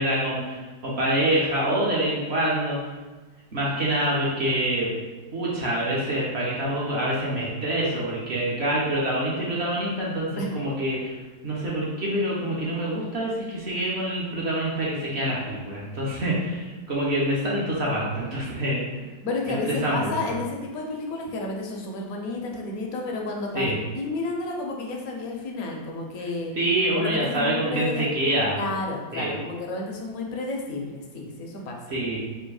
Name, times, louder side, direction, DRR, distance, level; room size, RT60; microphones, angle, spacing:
voice 1, 0.0-3.0 3.5-4.9 5.3-11.2 11.4-18.8 19.5-20.3 23.5-23.8 26.6-28.6 29.1-29.4 31.9-32.2, right 1 dB, 45° right, -5 dB, 0.9 m, -26 dB
voice 2, 19.2-26.5 26.9-28.1 28.5-31.8, left 2 dB, 65° left, 0 dB, 1.0 m, -31 dB
3.5 x 2.8 x 4.7 m, 1.2 s
omnidirectional pair, 1.9 m